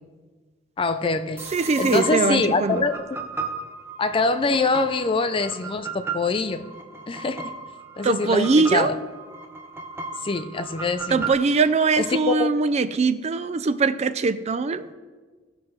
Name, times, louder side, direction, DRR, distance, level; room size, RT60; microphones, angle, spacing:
voice 1, 0.8-1.4 1.8-3.0 4.0-6.7 7.1-7.5 8.0-9.0 10.2-11.2 12.0-12.5, left 3 dB, 30° left, 10 dB, 0.4 m, -24 dB
sound 1, 1.4-12.2, right 4 dB, 15° right, 0.8 m, -36 dB
voice 2, 1.5-2.9 8.0-8.9 11.1-14.9, right 4 dB, 35° right, 12 dB, 0.4 m, -21 dB
17.0 x 6.0 x 3.2 m, 1.4 s
head